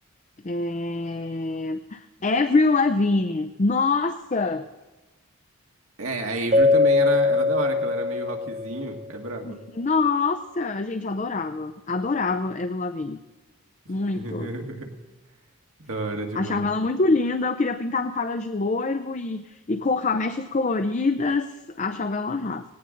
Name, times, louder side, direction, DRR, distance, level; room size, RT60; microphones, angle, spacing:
voice 1, 0.4-4.7 9.4-13.2 13.9-14.5 16.3-22.6, left 3 dB, 35° left, 9 dB, 0.5 m, -25 dB
voice 2, 6.0-9.6 14.1-14.9 15.9-16.7, right 2 dB, 75° right, 2 dB, 1.8 m, -31 dB
Keyboard (musical), 6.5-9.0, left 3 dB, 35° right, 0.8 m, -21 dB
18.5 x 17.5 x 3.9 m, 1.1 s
head